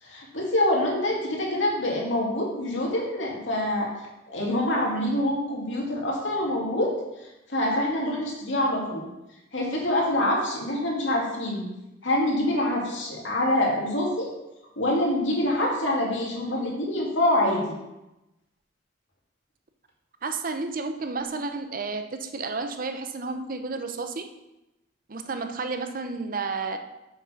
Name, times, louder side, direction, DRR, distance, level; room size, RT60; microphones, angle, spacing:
voice 1, 0.0-3.9 4.3-6.9 7.2-9.1 9.5-11.6 12.0-14.3 14.8-17.7, left 1 dB, 90° left, -2 dB, 2.7 m, -25 dB
voice 2, 20.2-24.3 25.1-26.8, right 4 dB, 50° right, 7 dB, 0.7 m, -31 dB
7.6 x 6.0 x 5.9 m, 0.95 s
head